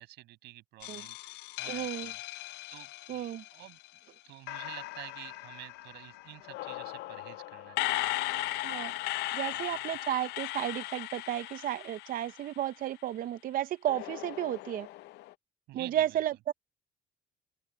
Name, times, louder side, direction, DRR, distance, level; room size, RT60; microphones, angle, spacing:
voice 1, 0.0-2.2 2.7-3.2 3.5-3.8 4.3-8.1 9.5-9.6 9.9-10.0 15.7-16.2, right 17 dB, 85° right, 7.2 m, -49 dB
sound 1, 0.8-4.0 4.5-12.9 13.9-15.3, left 18 dB, 80° left, 0.5 m, -38 dB
voice 2, 1.7-2.1 3.1-3.4 8.6-8.9 9.3-14.9 15.7-16.5, right 12 dB, 55° right, 0.5 m, -33 dB
open air
cardioid pair, 110°, 17 cm